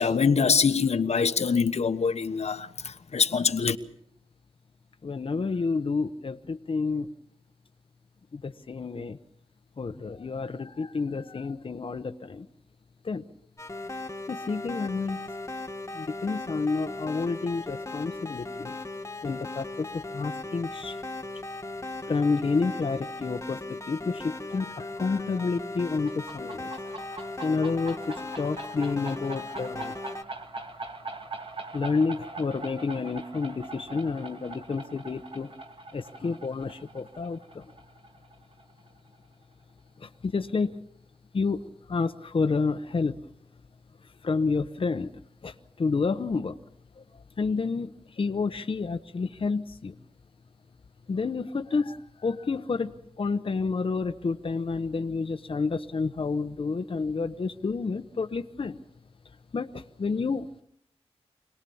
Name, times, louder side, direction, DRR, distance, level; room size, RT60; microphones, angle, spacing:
voice 1, 0.0-2.7 3.1-3.8, left 5 dB, 70° left, 1.2 m, -24 dB
voice 2, 5.0-7.1 8.3-9.2 9.8-12.5 13.0-13.2 14.3-15.3 15.9-18.7 19.2-21.0 22.0-26.7 27.4-29.9 31.7-35.5 35.9-37.7 40.0-40.8 41.3-43.2 44.0-45.1 45.4-46.6 47.0-50.0 51.1-58.8 59.5-60.5, left 4 dB, 50° left, 0.9 m, -30 dB
sound 1, 13.6-30.2, left 2 dB, 25° left, 1.6 m, -38 dB
sound 2, 25.9-39.2, right 2 dB, 50° right, 2.5 m, -42 dB
26.0 x 19.5 x 7.1 m
wide cardioid pair, 120°, 11 cm